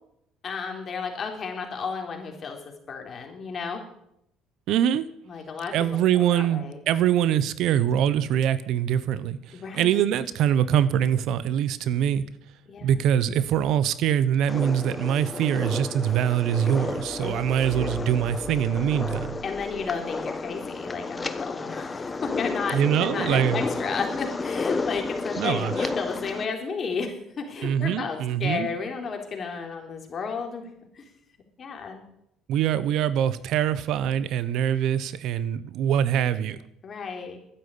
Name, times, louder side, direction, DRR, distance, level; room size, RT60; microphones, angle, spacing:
voice 1, 0.4-3.8 5.3-6.8 9.5-10.0 12.7-12.9 17.2-17.4 19.4-30.7 30.9-31.1 31.6-32.0 36.8-37.4, left 5 dB, 40° left, 3 dB, 3.7 m, -33 dB
voice 2, 4.7-5.0 5.7-12.2 12.8-19.3 22.7-23.6 25.4-25.9 27.6-28.7 32.5-36.6, right 10 dB, 70° right, 16 dB, 0.9 m, -24 dB
sound 1, 14.5-26.4, left 3 dB, 25° left, 1.2 m, -32 dB
sound 2, 16.5-20.6, equal, 25° right, 4.1 m, -44 dB
12.0 x 10.0 x 8.5 m, 0.77 s
supercardioid pair, 95°, 0 cm